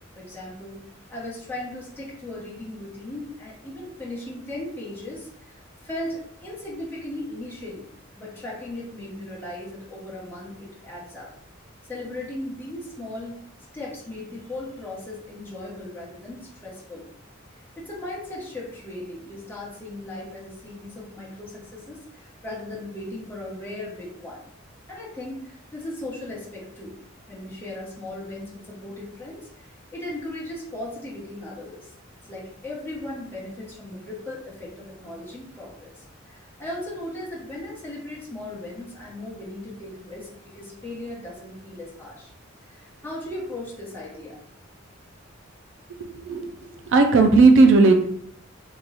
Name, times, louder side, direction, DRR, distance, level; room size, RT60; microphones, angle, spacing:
voice 1, 0.1-7.9 8.2-11.3 11.9-13.4 13.7-17.1 17.8-24.4 24.9-27.0 27.3-31.9 32.3-42.3 42.6-44.4, left 1 dB, 10° left, -5 dB, 1.0 m, -37 dB
voice 2, 46.0-47.9, right 3 dB, 65° right, 5 dB, 0.4 m, -16 dB
2.9 x 2.3 x 3.9 m, 0.68 s
head